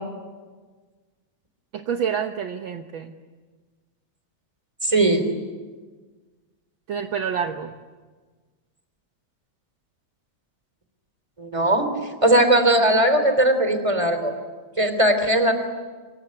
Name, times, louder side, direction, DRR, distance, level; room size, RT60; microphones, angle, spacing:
voice 1, 1.7-3.2 6.9-7.7, right 7 dB, 60° right, 6 dB, 1.3 m, -28 dB
voice 2, 4.8-5.2 11.4-11.9 12.2-14.3 14.8-15.5, right 1 dB, 10° right, 8 dB, 3.1 m, -19 dB
25.0 x 24.5 x 9.7 m, 1.4 s
omnidirectional pair, 3.4 m